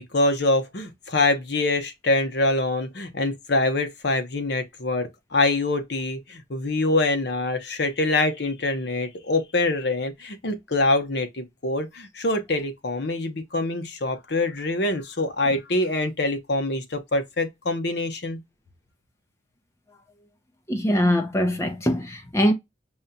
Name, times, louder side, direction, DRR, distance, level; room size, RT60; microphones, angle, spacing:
voice 1, 0.0-18.4, left 2 dB, 60° left, 0.8 m, -25 dB
voice 2, 20.7-22.5, equal, 15° left, 0.7 m, -22 dB
5.4 x 2.3 x 2.6 m
head